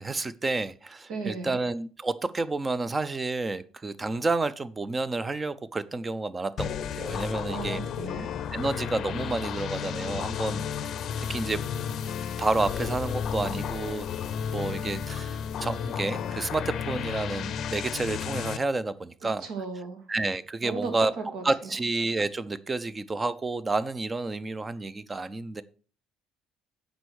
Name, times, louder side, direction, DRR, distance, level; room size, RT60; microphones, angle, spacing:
voice 1, 0.0-7.8 8.5-10.9 11.2-11.6 12.4-14.1 14.5-19.4 20.1-21.1 21.4-25.6, right 3 dB, 20° right, 0.6 m, -30 dB
voice 2, 1.1-1.5 7.5-8.3 19.4-20.1 20.6-21.7, right 4 dB, 70° right, 2.3 m, -36 dB
sound 1, 6.6-18.6, left 7 dB, 50° left, 0.6 m, -32 dB
8.0 x 5.3 x 6.3 m
cardioid pair, 130°, 0 cm